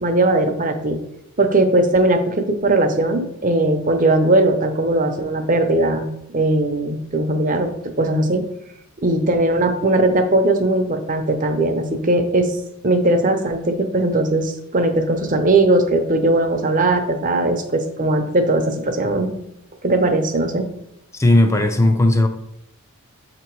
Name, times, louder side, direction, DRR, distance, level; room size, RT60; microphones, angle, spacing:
voice 1, 0.0-1.0 1.4-6.1 6.3-8.4 9.0-12.6 12.8-19.3 19.8-20.7, right 2 dB, 35° right, 0.7 m, -19 dB
voice 2, 21.1-22.3, left 1 dB, 15° left, 0.5 m, -15 dB
7.6 x 2.9 x 4.6 m
head